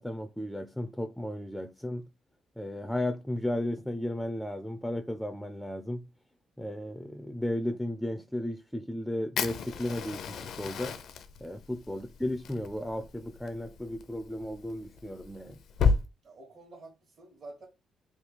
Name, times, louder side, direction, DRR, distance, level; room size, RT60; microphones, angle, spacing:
voice 1, 0.0-2.1 2.6-6.1 6.6-11.0 11.4-15.6, left 1 dB, ahead, 0.4 m, -34 dB
Fire, 9.4-16.0, left 5 dB, 70° left, 0.5 m, -33 dB
voice 2, 16.2-17.7, right 2 dB, 50° right, 1.3 m, -49 dB
3.3 x 2.4 x 4.4 m
cardioid pair, 90°, 0 cm